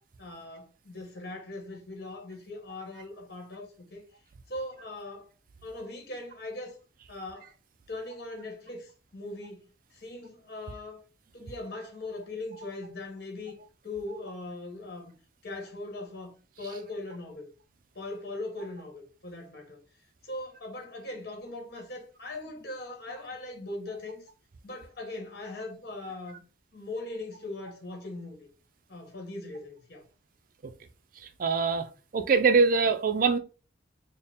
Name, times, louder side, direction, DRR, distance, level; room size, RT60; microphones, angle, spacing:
voice 1, 0.2-4.0 4.5-5.3 5.6-6.8 7.1-7.5 7.9-11.0 11.3-13.6 13.8-15.1 15.4-17.5 17.9-19.8 20.2-24.3 24.6-26.4 26.7-28.5 28.9-30.0, left 2 dB, 55° left, 1.1 m, -40 dB
voice 2, 31.4-31.9 32.1-33.4, right 4 dB, 45° right, 0.4 m, -23 dB
4.2 x 2.1 x 3.5 m
head